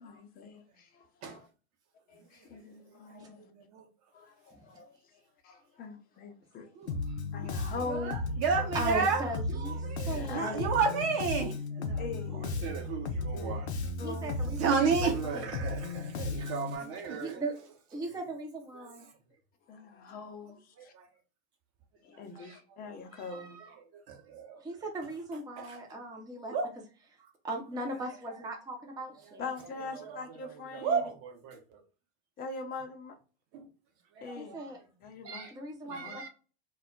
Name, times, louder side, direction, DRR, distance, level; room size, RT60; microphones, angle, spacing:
voice 1, 0.0-1.5 2.1-3.5 4.1-5.0 5.4-6.7 7.3-8.2 9.6-10.6 12.0-12.6 13.3-13.6 14.0-14.5 16.3-16.7 19.7-20.9 22.0-23.6 29.4-31.0 32.4-33.1 34.2-34.6 35.0-35.5 35.8-36.2, left 4 dB, 30° left, 0.6 m, -42 dB
voice 2, 2.1-3.9 6.7-6.9 7.4-12.0 12.3-13.7 14.4-17.4 18.7-18.9 20.8-21.1 22.1-22.6 23.1-24.6 25.6-25.8 26.5-26.7 29.2-29.3 29.9-31.8 33.5-33.7 34.1-34.6 35.2-35.6 35.9-36.3, right 5 dB, 45° right, 0.8 m, -34 dB
Bass guitar, 6.9-16.8, left 2 dB, 85° left, 0.5 m, -35 dB
voice 3, 8.7-9.8 10.0-10.7 14.0-15.1 16.8-16.9 17.2-17.5 17.9-19.1 24.6-26.5 27.4-29.5 34.4-34.8 35.5-36.3, right 2 dB, 10° right, 0.6 m, -38 dB
2.2 x 2.0 x 3.7 m
figure-of-eight pair, 85°, 32 cm